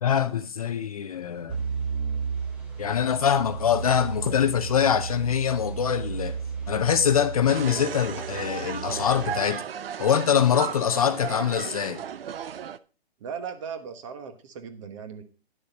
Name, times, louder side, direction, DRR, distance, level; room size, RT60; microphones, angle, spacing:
voice 1, 0.0-1.6 2.8-6.4 6.7-9.6 10.0-12.0, left 8 dB, 35° left, 0.6 m, -24 dB
sound 1, 1.5-9.4, right 6 dB, 5° right, 0.6 m, -33 dB
sound 2, 7.5-12.8, right 8 dB, 65° right, 0.7 m, -35 dB
voice 2, 13.2-15.2, right 7 dB, 30° right, 1.2 m, -37 dB
10.0 x 6.7 x 5.2 m
hypercardioid pair, 155°, 31 cm